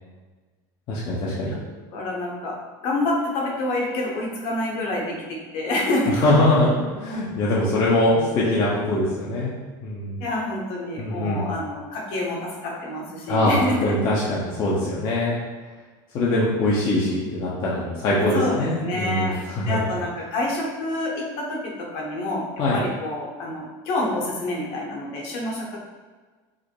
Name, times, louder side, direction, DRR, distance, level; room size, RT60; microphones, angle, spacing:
voice 1, 0.9-1.6 6.1-9.5 9.8-10.2 11.0-11.5 13.3-15.4 16.1-19.8 22.6-22.8, left 1 dB, 40° left, -6 dB, 0.8 m, -22 dB
voice 2, 1.9-2.5 2.8-6.2 10.2-13.9 18.3-19.4 19.7-22.4 22.7-25.8, left 1 dB, 60° left, -2 dB, 1.2 m, -27 dB
4.9 x 2.1 x 4.6 m, 1.4 s
cardioid pair, 145°, 11 cm